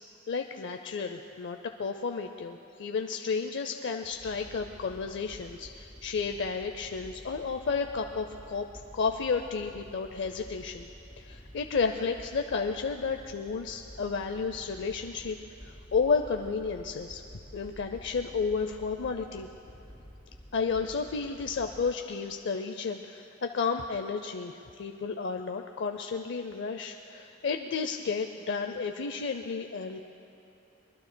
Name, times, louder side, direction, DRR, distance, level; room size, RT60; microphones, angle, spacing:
voice 1, 0.3-8.7 8.9-10.9 11.2-15.4 15.6-17.2 17.5-19.5 20.5-30.0, left 5 dB, 60° left, 5 dB, 0.5 m, -32 dB
sound 1, 4.1-22.4, equal, 15° left, 3.2 m, -50 dB
23.5 x 21.0 x 2.2 m, 2.8 s
head